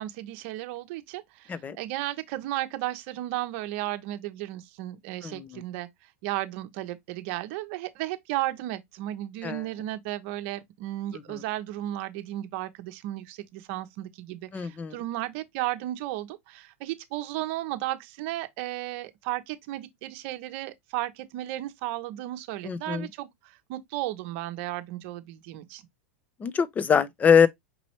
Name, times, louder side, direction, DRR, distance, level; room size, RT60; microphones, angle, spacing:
voice 1, 0.0-5.9 6.2-25.8, right 15 dB, 55° right, 0.7 m, -34 dB
voice 2, 5.2-5.6 9.4-9.6 14.5-14.9 22.6-23.1 26.4-27.5, left 7 dB, 20° left, 0.5 m, -23 dB
5.3 x 3.0 x 2.8 m
hypercardioid pair, 120°, 8 cm